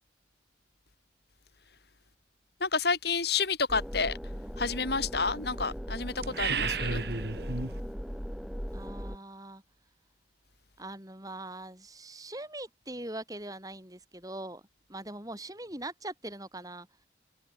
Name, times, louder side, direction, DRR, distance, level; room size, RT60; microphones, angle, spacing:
voice 1, 2.6-4.2 4.6-7.0, left 4 dB, 55° left, 3.6 m, -30 dB
sound 1, 3.7-9.2, equal, ahead, 7.0 m, -38 dB
sound 2, 6.2-7.8, right 4 dB, 55° right, 2.2 m, -32 dB
voice 2, 8.7-9.6 10.8-14.6 14.9-16.9, right 1 dB, 20° right, 7.9 m, -42 dB
head